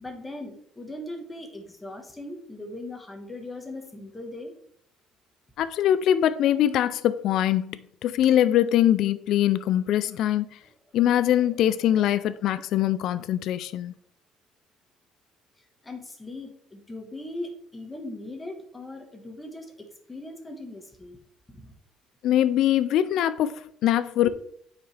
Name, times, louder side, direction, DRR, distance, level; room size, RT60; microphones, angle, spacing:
voice 1, 0.0-4.5 10.6-10.7 11.0-11.5 11.9-13.1 15.6-21.2 21.5-21.7 24.2-24.3, left 1 dB, 15° left, 1.3 m, -40 dB
voice 2, 5.6-10.5 10.9-13.9 22.2-24.3, left 11 dB, 60° left, 0.4 m, -23 dB
8.9 x 4.9 x 3.3 m
cardioid pair, 140°, 0 cm